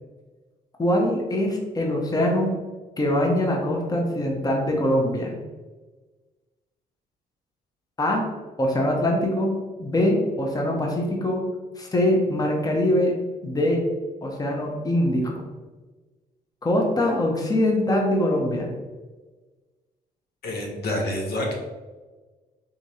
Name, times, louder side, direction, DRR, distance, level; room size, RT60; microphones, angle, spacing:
voice 1, 0.8-2.5 3.0-5.3 8.0-8.2 8.6-9.5 9.8-11.4 11.8-13.1 13.4-13.8 14.2-15.3 16.6-18.7, left 1 dB, 20° left, 0 dB, 0.8 m, -23 dB
voice 2, 20.4-21.5, left 1 dB, 70° left, 0 dB, 0.9 m, -27 dB
3.7 x 2.9 x 2.8 m, 1.3 s
cardioid pair, 80°, 17 cm